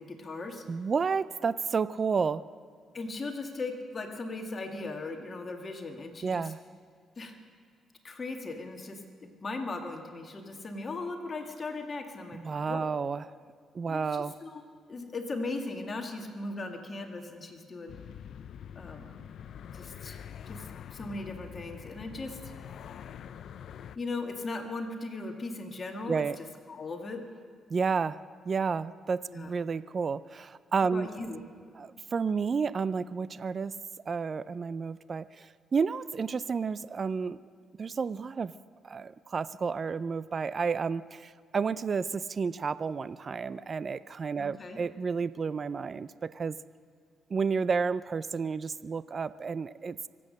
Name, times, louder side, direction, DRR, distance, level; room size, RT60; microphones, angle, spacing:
voice 1, 0.0-0.6 2.9-6.5 7.2-7.4 8.0-12.8 13.9-14.6 14.9-18.0 18.8-19.1 19.7-22.5 24.0-27.2 29.3-29.5 30.8-31.4 44.4-44.8, left 3 dB, 35° left, 3 dB, 1.9 m, -38 dB
voice 2, 0.7-2.4 6.2-6.6 12.3-13.3 13.7-14.4 26.1-26.4 27.7-28.2 28.5-31.1 31.8-33.7 34.1-37.4 37.8-38.5 38.8-46.6 47.3-50.0, right 5 dB, 40° right, 16 dB, 0.4 m, -31 dB
sound 1, 17.9-24.0, left 8 dB, 65° left, 0.5 m, -45 dB
24.5 x 8.5 x 6.5 m, 2.1 s
cardioid pair, 90°, 0 cm